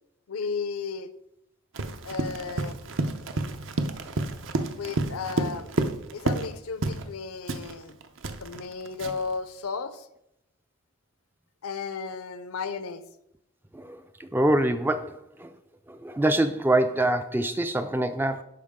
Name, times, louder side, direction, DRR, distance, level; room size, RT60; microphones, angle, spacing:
voice 1, 0.3-1.1 2.0-2.8 4.7-5.7 6.1-8.0 8.4-10.1 11.6-13.0, left 5 dB, 85° left, 12 dB, 0.6 m, -34 dB
Run, 1.7-6.5 6.8-7.1 7.5-9.3, right 2 dB, 60° right, 0.6 m, -30 dB
voice 2, 13.7-15.5 15.9-18.4, right 1 dB, 10° right, 9 dB, 0.3 m, -25 dB
11.5 x 4.7 x 3.6 m, 0.81 s
head